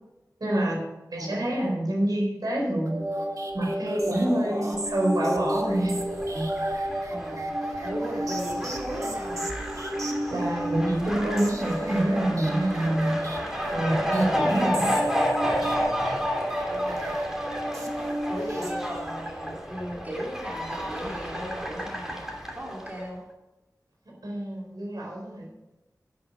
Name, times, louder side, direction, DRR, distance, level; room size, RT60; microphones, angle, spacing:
voice 1, 0.4-0.8 1.1-3.1 3.5-6.0 6.3-6.5 10.3-13.3 13.7-14.9 16.1-16.2 24.2-25.5, right 1 dB, 70° right, -2 dB, 4.4 m, -27 dB
voice 2, 1.2-1.8 4.0-4.8 7.1-7.5 7.8-9.5 16.5-17.2 18.3-22.2 22.5-23.2, equal, 25° right, -2 dB, 3.0 m, -36 dB
sound 1, 2.9-19.3, right 1 dB, 55° right, 1.8 m, -32 dB
Fowl, 5.7-23.0, equal, 5° right, 2.7 m, -31 dB
11.5 x 9.6 x 5.2 m, 1.0 s
wide cardioid pair, 65°, 7 cm